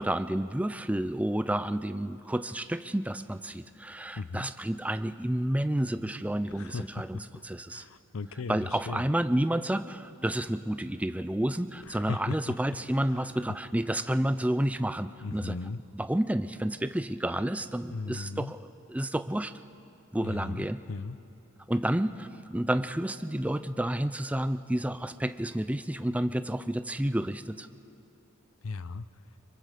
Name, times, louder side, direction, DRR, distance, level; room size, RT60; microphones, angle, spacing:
voice 1, 0.0-7.9 8.5-15.6 15.9-19.5 20.1-20.8 21.7-27.7, right 1 dB, 5° right, 11 dB, 0.4 m, -30 dB
voice 2, 4.2-4.5 6.5-7.4 7.7-8.6 8.9-9.0 11.9-12.5 15.2-15.8 17.9-18.5 20.2-21.2 28.6-29.0, left 4 dB, 80° left, 14 dB, 0.7 m, -37 dB
26.0 x 23.5 x 5.1 m, 2.7 s
head